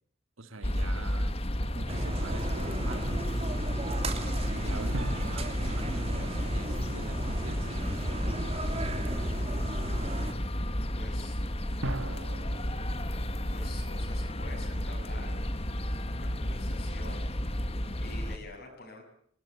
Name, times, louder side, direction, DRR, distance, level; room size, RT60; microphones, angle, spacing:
voice 1, 0.4-1.4 1.7-3.2 4.5-7.9, right 2 dB, 90° right, 10 dB, 2.0 m, -44 dB
sound 1, 0.6-18.4, equal, 30° left, 1.6 m, -32 dB
sound 2, 1.9-10.3, right 1 dB, 30° right, 2.9 m, -35 dB
sound 3, 4.9-7.8 11.8-15.1, right 2 dB, 70° right, 1.6 m, -43 dB
voice 2, 10.6-11.4 13.5-15.4 16.1-17.3 18.0-19.0, left 2 dB, 50° left, 2 dB, 7.7 m, -47 dB
25.0 x 20.5 x 8.3 m, 0.66 s
head